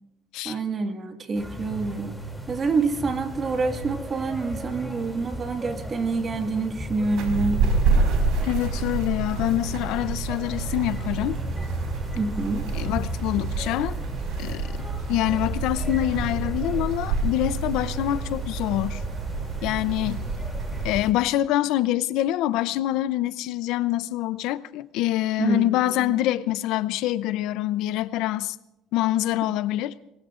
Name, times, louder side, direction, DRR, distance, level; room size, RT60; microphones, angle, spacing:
voice 1, 0.5-2.2 2.5-7.6 12.2-12.7 25.4-26.1, right 3 dB, 30° right, 1.8 m, -27 dB
sound 1, 1.3-21.1, right 1 dB, 5° right, 2.7 m, -36 dB
sound 2, 7.1-20.9, right 4 dB, 75° right, 4.7 m, -28 dB
voice 2, 8.4-11.4 12.7-14.0 14.4-14.7 15.1-19.0 19.6-20.3 20.8-28.6 28.9-29.9, left 14 dB, 75° left, 0.5 m, -25 dB
26.0 x 22.0 x 2.5 m
cardioid pair, 130°, 0 cm